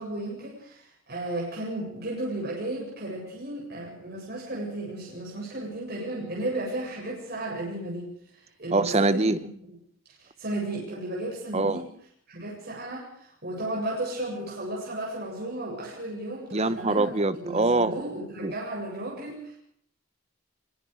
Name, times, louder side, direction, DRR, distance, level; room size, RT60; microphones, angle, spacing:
voice 1, 0.0-9.4 10.2-11.9 12.3-17.1 17.4-19.6, right 1 dB, 50° right, 7.9 m, -34 dB
voice 2, 8.7-9.4 11.5-11.8 16.5-18.0 18.4-18.5, right 2 dB, 30° right, 1.0 m, -24 dB
25.0 x 24.5 x 5.1 m
head